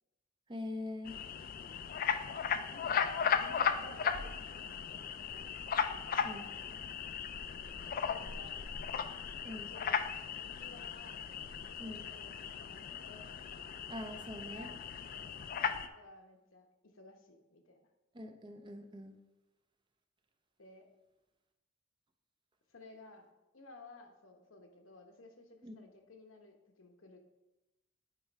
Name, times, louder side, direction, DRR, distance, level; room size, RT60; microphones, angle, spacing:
voice 1, 0.5-1.2 6.2-6.5 9.4-9.7 11.8-12.0 13.9-14.7 18.1-19.2 25.6-25.8, left 1 dB, 25° right, 6 dB, 0.5 m, -43 dB
sound 1, 1.1-15.9, left 7 dB, 45° left, 0.3 m, -37 dB
voice 2, 2.7-5.5 6.2-6.5 7.9-8.9 9.7-10.2 10.6-11.2 11.8-13.3 14.4-14.8 15.1-15.3 15.9-17.8 20.6-20.9 22.7-27.2, left 2 dB, 85° left, 4 dB, 1.0 m, -56 dB
9.1 x 3.2 x 4.6 m, 1.0 s
head